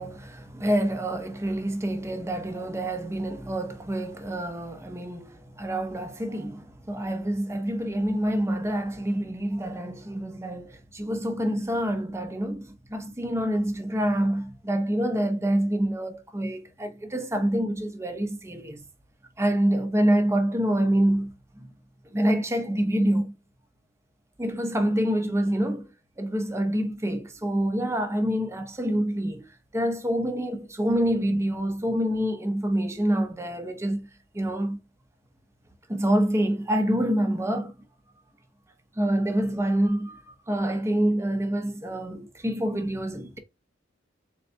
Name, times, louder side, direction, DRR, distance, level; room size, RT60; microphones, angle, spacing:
voice 1, 0.0-18.8 19.4-21.7 22.1-23.3 24.4-25.9 26.2-29.5 29.7-34.1 34.3-34.8 35.9-37.7 39.0-43.4, right 1 dB, 15° right, 0.8 m, -26 dB
4.1 x 4.0 x 2.3 m
head